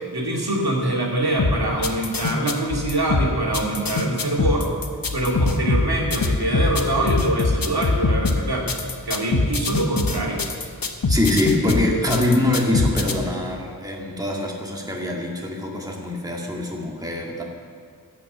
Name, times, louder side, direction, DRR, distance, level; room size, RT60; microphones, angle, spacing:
voice 1, 0.1-4.7 5.1-8.7 9.1-10.4, right 1 dB, 75° right, -2 dB, 2.4 m, -24 dB
sound 1, 1.4-13.1, left 3 dB, 60° left, 1.1 m, -23 dB
voice 2, 11.1-17.4, left 1 dB, 10° right, -2 dB, 2.0 m, -23 dB
15.5 x 6.0 x 7.9 m, 2.1 s
wide cardioid pair, 60°, 38 cm